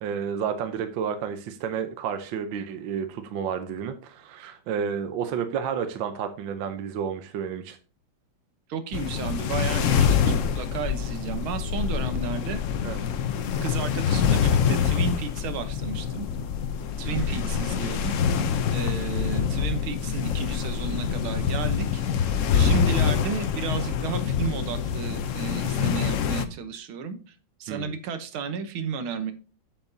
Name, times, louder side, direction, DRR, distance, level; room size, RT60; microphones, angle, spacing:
voice 1, 0.0-7.8 12.8-13.0 17.0-17.5 22.7-22.8 27.7-27.9, right 7 dB, 70° right, 8 dB, 1.5 m, -31 dB
voice 2, 8.7-12.6 13.6-16.3 17.0-18.4 18.7-22.0 22.5-29.3, right 5 dB, 90° right, 10 dB, 1.9 m, -33 dB
sound 1, 8.9-26.5, left 7 dB, 70° left, 0.7 m, -25 dB
7.7 x 7.2 x 2.7 m, 0.38 s
omnidirectional pair, 2.2 m